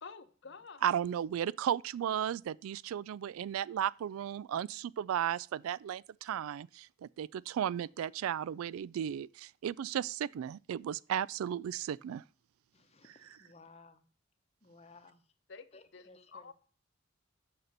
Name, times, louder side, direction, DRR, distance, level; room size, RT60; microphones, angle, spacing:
voice 1, 0.0-0.8 15.5-16.5, left 5 dB, 60° left, 0.8 m, -50 dB
voice 2, 0.8-12.2, right 9 dB, 85° right, 0.3 m, -35 dB
voice 3, 12.7-14.1 14.6-15.2 15.7-16.5, left 3 dB, 30° left, 0.8 m, -58 dB
6.7 x 5.8 x 6.6 m
head